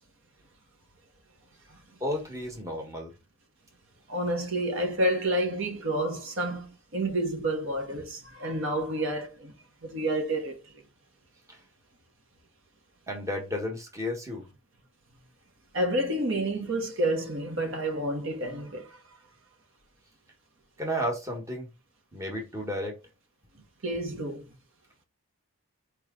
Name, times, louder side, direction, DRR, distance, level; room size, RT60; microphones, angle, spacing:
voice 1, 2.0-3.1 13.1-14.4 20.8-21.7 22.1-23.0, equal, 15° right, 1.1 m, -32 dB
voice 2, 4.1-9.5 9.8-10.8 15.7-19.0 23.8-24.5, right 1 dB, 60° right, 1.1 m, -29 dB
4.7 x 3.0 x 3.6 m
head